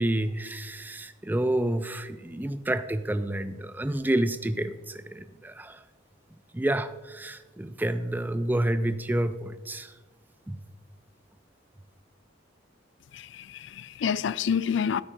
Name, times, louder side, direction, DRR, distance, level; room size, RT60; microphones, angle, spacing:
voice 1, 0.0-5.8 6.5-9.9 10.5-10.6, right 1 dB, 10° right, 0.4 m, -29 dB
voice 2, 13.1-15.0, left 7 dB, 65° left, 0.3 m, -28 dB
13.0 x 9.0 x 3.9 m
head